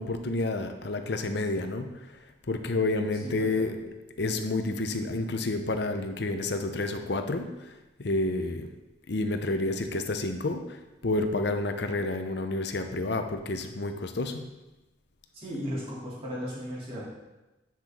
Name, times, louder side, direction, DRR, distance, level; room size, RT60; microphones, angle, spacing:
voice 1, 0.0-1.9 2.5-3.8 4.2-7.5 8.0-8.7 9.1-10.8 11.0-14.5, left 2 dB, 60° left, 7 dB, 0.7 m, -29 dB
voice 2, 3.2-3.7 15.3-17.0, equal, 30° right, -7 dB, 2.8 m, -36 dB
9.6 x 5.9 x 3.7 m, 1.0 s
head